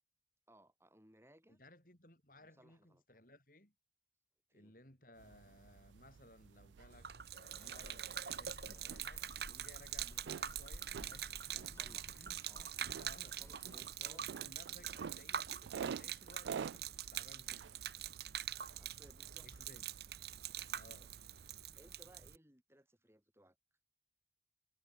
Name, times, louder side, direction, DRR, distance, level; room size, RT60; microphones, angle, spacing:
voice 1, 0.5-1.6 2.4-3.0 4.5-4.7 11.6-12.2 12.5-12.7 13.3-15.2 18.7-19.7 21.0-21.1 21.8-23.6, right 1 dB, 15° right, 7.6 m, -65 dB
voice 2, 1.5-3.7 4.5-12.4 12.8-18.0 19.4-19.9 20.7-21.1, left 1 dB, 50° left, 7.7 m, -61 dB
sound 1, 5.2-21.6, right 6 dB, 85° right, 0.4 m, -51 dB
Gurgling / Liquid, 6.9-22.4, right 9 dB, 65° right, 1.7 m, -45 dB
sound 2, 7.5-14.0, left 1 dB, 15° left, 0.9 m, -56 dB
head